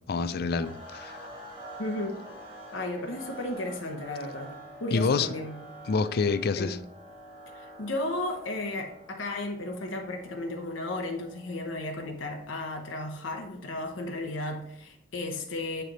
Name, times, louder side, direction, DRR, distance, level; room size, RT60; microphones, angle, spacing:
voice 1, 0.1-1.2 4.9-5.3 5.9-6.8, left 4 dB, 50° left, 0.4 m, -27 dB
sound 1, 0.6-14.7, right 1 dB, 25° right, 1.8 m, -48 dB
voice 2, 1.8-2.2 2.7-5.6 6.6-6.8 7.5-15.8, left 2 dB, 75° left, 0.9 m, -34 dB
9.3 x 3.3 x 4.1 m
head